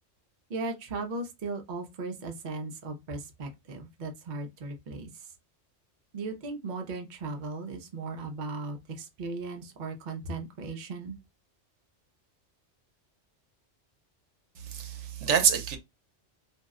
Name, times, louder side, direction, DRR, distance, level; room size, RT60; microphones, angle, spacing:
voice 1, 0.5-5.3 6.1-11.2, right 3 dB, 50° right, 0.7 m, -37 dB
voice 2, 14.6-15.8, right 7 dB, 90° right, 1.0 m, -26 dB
2.6 x 2.1 x 3.5 m
omnidirectional pair, 1.2 m